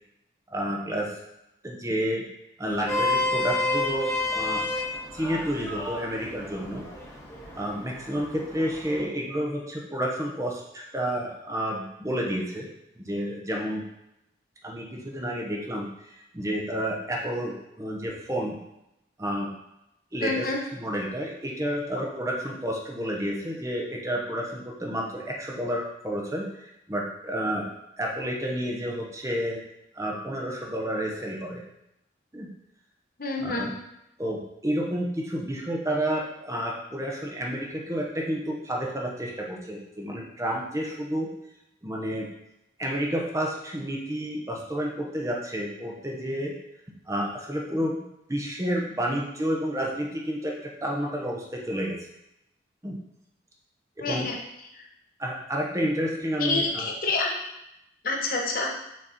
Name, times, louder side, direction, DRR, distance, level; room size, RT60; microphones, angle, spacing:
voice 1, 0.5-1.1 1.6-2.2 2.6-4.6 5.1-6.9 7.5-12.7 13.0-13.8 14.6-18.6 19.2-19.5 20.1-20.5 20.7-27.7 28.0-29.6 29.9-31.6 32.3-32.5 33.4-33.7 34.2-41.3 41.8-42.3 42.8-46.5 47.1-52.0 52.8-53.0 54.0-54.3 55.2-56.9, equal, 15° right, -1 dB, 0.8 m, -30 dB
Vehicle horn car horn honking, 2.6-9.0, left 2 dB, 15° left, 1.5 m, -30 dB
voice 2, 20.2-20.6 33.2-33.7 54.0-54.4 54.7-54.8 56.4-57.4 58.0-58.7, left 3 dB, 50° left, 0 dB, 1.0 m, -27 dB
6.2 x 4.2 x 4.3 m, 0.85 s
head